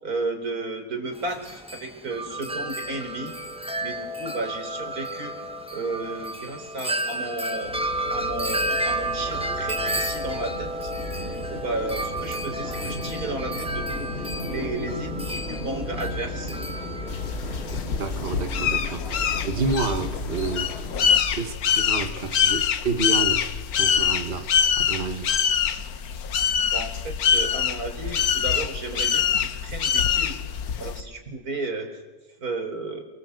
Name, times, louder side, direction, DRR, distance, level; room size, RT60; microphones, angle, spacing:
voice 1, 0.0-3.3 3.8-5.3 5.7-7.8 8.1-10.9 11.3-16.5 26.6-30.4 30.8-31.9 32.4-33.0, right 2 dB, 85° right, 4.4 m, -33 dB
Wind chime, 1.1-18.0, right 1 dB, 5° right, 1.1 m, -32 dB
sound 1, 7.6-21.2, left 2 dB, 45° left, 2.3 m, -35 dB
sound 2, 17.1-31.0, left 7 dB, 80° left, 1.5 m, -24 dB
voice 2, 18.0-20.7 21.3-24.5 24.8-25.4, right 4 dB, 40° right, 1.5 m, -29 dB
28.0 x 22.5 x 7.9 m
omnidirectional pair, 1.6 m